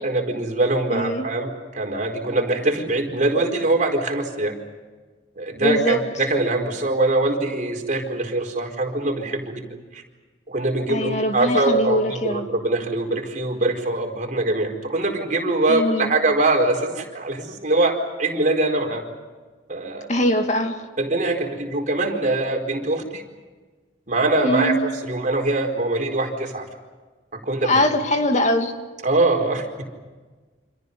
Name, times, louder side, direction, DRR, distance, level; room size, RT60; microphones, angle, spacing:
voice 1, 0.0-4.5 5.4-9.6 9.9-10.0 10.5-19.0 19.7-20.1 21.0-23.2 24.1-26.6 27.3-27.8 29.0-29.8, right 2 dB, 45° right, 2 dB, 4.6 m, -23 dB
voice 2, 0.9-1.2 5.6-6.0 10.9-12.5 15.7-16.1 20.1-20.8 24.4-24.8 27.6-28.7, left 1 dB, 45° left, 5 dB, 2.5 m, -22 dB
29.0 x 27.0 x 5.5 m, 1.3 s
head